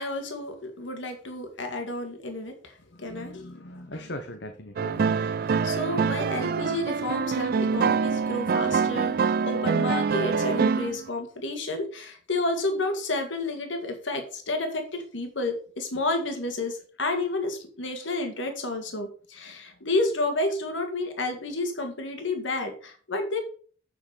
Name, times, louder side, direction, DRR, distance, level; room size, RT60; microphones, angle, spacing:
voice 1, 0.0-3.5 5.6-23.4, left 2 dB, 80° left, 4 dB, 2.1 m, -30 dB
voice 2, 2.8-5.2 19.5-19.8, left 1 dB, 60° left, 6 dB, 1.1 m, -41 dB
sound 1, 4.8-11.0, right 5 dB, 50° right, 0.3 m, -25 dB
8.7 x 6.2 x 5.1 m, 0.43 s
head